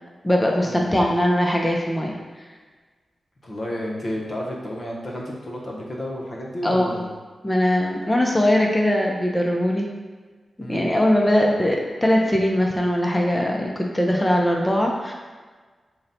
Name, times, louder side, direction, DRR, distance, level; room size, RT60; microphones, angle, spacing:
voice 1, 0.2-2.2 6.6-7.0 7.4-9.9 10.6-15.1, left 1 dB, 10° left, 0 dB, 0.4 m, -21 dB
voice 2, 3.4-7.1 10.6-10.9, equal, 40° left, -3 dB, 0.7 m, -31 dB
3.9 x 2.1 x 4.0 m, 1.4 s
wide cardioid pair, 115°, 0 cm